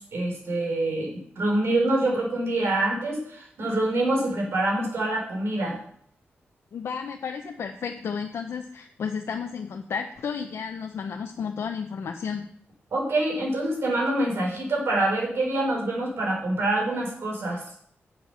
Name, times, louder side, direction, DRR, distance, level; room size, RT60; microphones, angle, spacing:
voice 1, 0.1-5.8 12.9-17.6, right 2 dB, 70° right, -1 dB, 3.8 m, -26 dB
voice 2, 6.7-12.5, left 6 dB, 75° left, 3 dB, 0.7 m, -32 dB
7.9 x 7.0 x 5.7 m, 0.63 s
wide cardioid pair, 120°, 4 cm